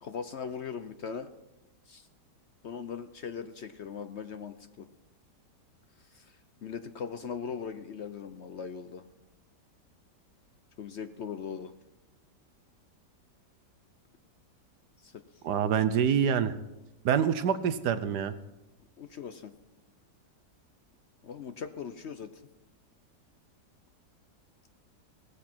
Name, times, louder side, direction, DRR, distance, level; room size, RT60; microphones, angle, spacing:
voice 1, 0.0-1.3 1.9-2.1 2.6-4.9 6.0-9.0 10.8-11.7 15.0-15.2 19.0-19.5 21.2-22.4, left 6 dB, 65° left, 10 dB, 0.6 m, -40 dB
voice 2, 15.4-16.5 17.0-18.3, right 8 dB, 70° right, 11 dB, 1.3 m, -26 dB
17.0 x 14.5 x 4.4 m, 0.97 s
omnidirectional pair, 1.9 m